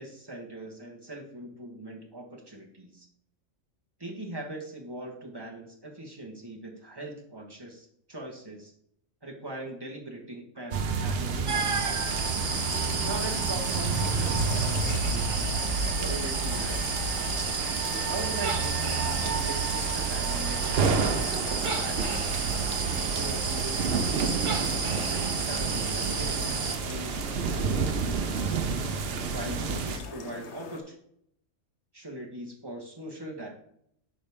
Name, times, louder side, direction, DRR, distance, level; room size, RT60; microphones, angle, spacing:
voice 1, 0.0-3.1 4.0-8.7 9.2-12.3 13.0-15.5 16.0-16.8 17.8-22.4 23.0-28.6 29.3-30.9 31.9-33.5, right 1 dB, 20° right, -1 dB, 1.5 m, -41 dB
sound 1, 10.7-30.0, right 5 dB, 60° right, 0.8 m, -30 dB
sound 2, 11.5-26.8, right 4 dB, 40° right, 0.5 m, -32 dB
sound 3, 12.5-30.8, left 5 dB, 65° left, 1.2 m, -43 dB
9.3 x 5.2 x 3.6 m, 0.71 s
omnidirectional pair, 1.3 m